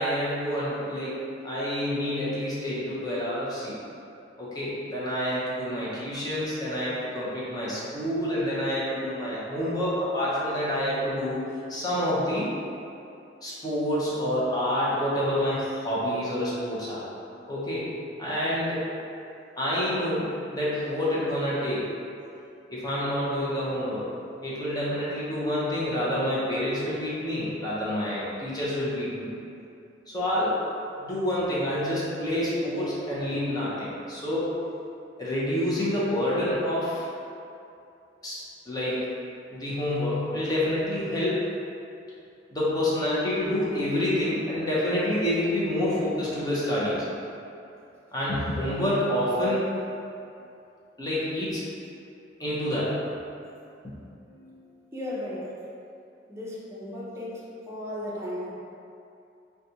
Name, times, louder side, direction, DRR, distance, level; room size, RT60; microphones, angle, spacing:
voice 1, 0.0-3.8 4.4-11.4 11.7-12.5 13.4-17.0 17.5-17.9 18.2-18.9 19.6-21.9 22.7-24.1 24.4-29.3 30.1-30.6 31.0-34.5 35.2-37.1 38.2-39.1 39.5-41.4 42.5-47.0 48.1-49.7 51.0-51.6 52.4-52.9, left 1 dB, 20° left, -8 dB, 0.6 m, -28 dB
voice 2, 54.1-55.6 56.3-58.5, left 1 dB, 15° right, -7 dB, 0.6 m, -36 dB
3.9 x 2.2 x 2.8 m, 2.6 s
head